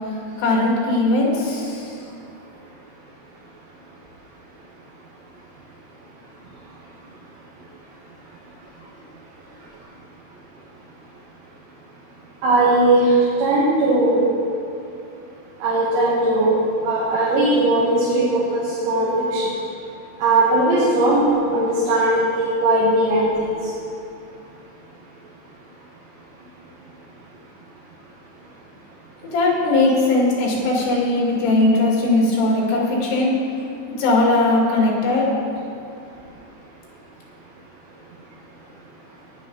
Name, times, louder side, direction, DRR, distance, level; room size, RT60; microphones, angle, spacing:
voice 1, 0.1-2.0 29.3-33.3 34.0-35.3, left 2 dB, 85° left, -3 dB, 4.8 m, -19 dB
voice 2, 12.4-14.2 15.6-16.6 16.8-19.4 20.2-23.5, right 2 dB, 70° right, -7 dB, 4.0 m, -18 dB
15.5 x 11.0 x 4.0 m, 2.6 s
omnidirectional pair, 5.5 m